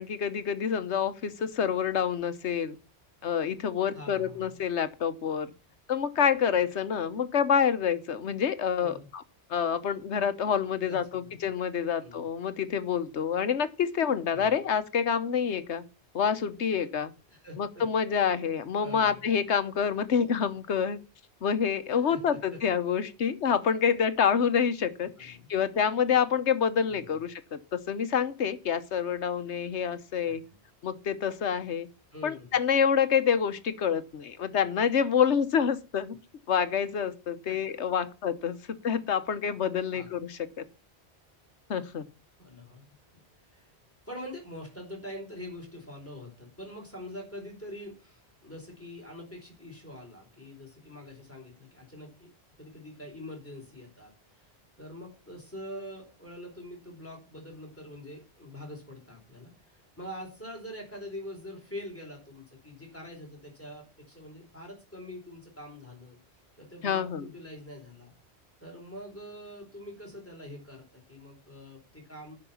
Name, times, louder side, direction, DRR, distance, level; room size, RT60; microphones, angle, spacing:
voice 1, 0.0-2.8 3.2-5.5 5.9-9.2 9.5-15.8 16.1-17.1 17.6-21.0 21.4-30.4 30.8-31.9 32.2-36.1 36.5-38.6 38.8-40.6 41.7-42.0 66.8-67.3, left 7 dB, 90° left, 12 dB, 1.3 m, -27 dB
voice 2, 3.9-4.6 8.8-9.1 10.8-11.4 12.0-12.2 14.3-14.5 17.3-17.9 18.8-19.3 21.9-22.6 23.2-23.3 25.2-25.5 26.9-27.2 30.2-30.4 32.1-32.5 37.5-37.6 39.9-40.1 42.4-42.8 43.4-43.7 44.1-52.3 52.6-54.5 54.8-66.2 66.6-68.1 68.6-72.3, left 1 dB, 10° left, 0 dB, 4.6 m, -44 dB
11.0 x 5.9 x 7.1 m, 0.32 s
omnidirectional pair, 1.1 m